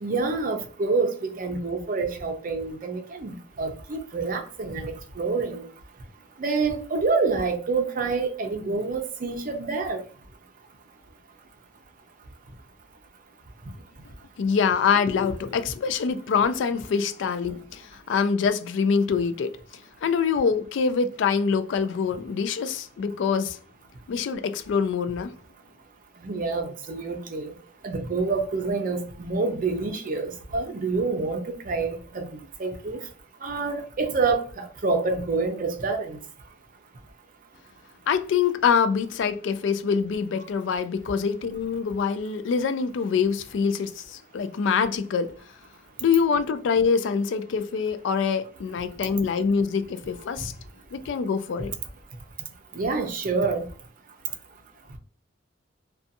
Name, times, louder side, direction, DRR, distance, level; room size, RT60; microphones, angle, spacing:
voice 1, 0.0-5.7 6.4-10.0 26.2-27.5 27.8-32.3 32.6-33.0 33.4-36.2 52.7-53.7, right 4 dB, 45° right, 0.5 m, -27 dB
voice 2, 14.4-19.5 20.0-23.6 24.1-25.3 38.1-45.3 46.0-50.5 50.9-51.7, left 6 dB, 70° left, 0.3 m, -25 dB
2.5 x 2.3 x 2.6 m
head